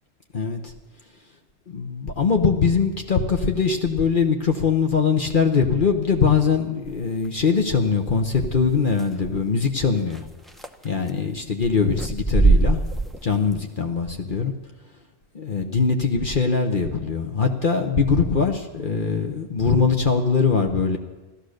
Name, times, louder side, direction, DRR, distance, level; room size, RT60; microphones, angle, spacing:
voice 1, 1.7-10.2 10.8-12.8 13.2-14.5 15.3-21.0, left 5 dB, 50° left, 4 dB, 1.1 m, -22 dB
sound 1, 6.8-7.3 9.0-9.1 10.1-10.2 10.5-11.1 11.6-13.5, right 3 dB, ahead, 0.6 m, -21 dB
16.0 x 13.0 x 6.5 m, 1.2 s
omnidirectional pair, 1.1 m